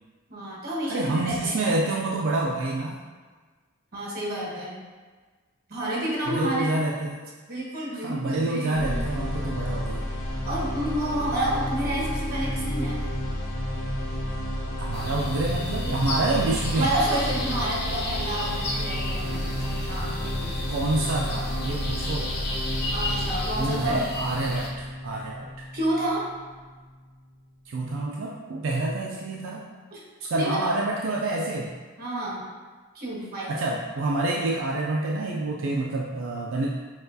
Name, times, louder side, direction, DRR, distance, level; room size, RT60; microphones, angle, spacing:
voice 1, 0.3-1.8 3.9-4.8 5.7-6.8 7.5-9.0 10.4-13.0 16.8-20.6 22.9-24.0 25.7-26.3 29.9-30.0 30.3-30.6 32.0-32.4 32.9-33.5, right 1 dB, 45° right, -5 dB, 1.1 m, -29 dB
voice 2, 0.9-3.0 6.3-7.2 7.9-10.0 14.8-16.9 20.7-22.3 23.6-25.6 27.7-29.6 30.2-31.7 33.5-36.8, right 2 dB, 65° right, -2 dB, 0.4 m, -27 dB
sound 1, 8.7-26.7, equal, 85° left, 0.8 m, -31 dB
sound 2, 14.9-24.7, left 2 dB, 50° left, 0.6 m, -34 dB
5.8 x 2.3 x 2.7 m, 1.4 s
head